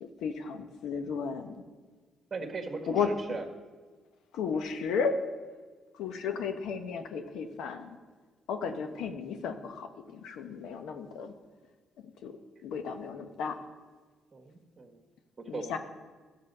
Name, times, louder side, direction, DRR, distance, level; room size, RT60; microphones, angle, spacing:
voice 1, 0.0-1.5 2.9-3.1 4.3-5.1 6.0-8.0 8.5-11.3 12.0-12.3 12.6-13.5 15.5-15.8, left 6 dB, 85° left, 6 dB, 0.9 m, -34 dB
voice 2, 2.3-3.4 14.3-15.0 15.4-15.8, right 3 dB, 35° right, 2 dB, 1.5 m, -39 dB
13.0 x 7.1 x 5.4 m, 1.4 s
cardioid pair, 90°, 0 cm